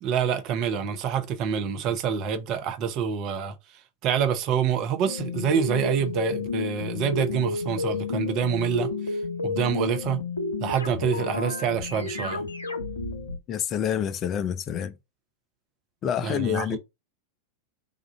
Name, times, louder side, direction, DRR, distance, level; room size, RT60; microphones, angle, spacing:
voice 1, 0.0-3.5 4.0-9.2 9.4-10.2 10.6-12.4 16.2-16.8, right 7 dB, 40° right, 0.7 m, -26 dB
sound 1, 5.0-13.4, left 4 dB, 75° left, 0.6 m, -31 dB
voice 2, 13.5-14.9 16.0-16.8, left 9 dB, 30° left, 0.4 m, -27 dB
3.6 x 2.4 x 3.8 m
figure-of-eight pair, 90°, 0 cm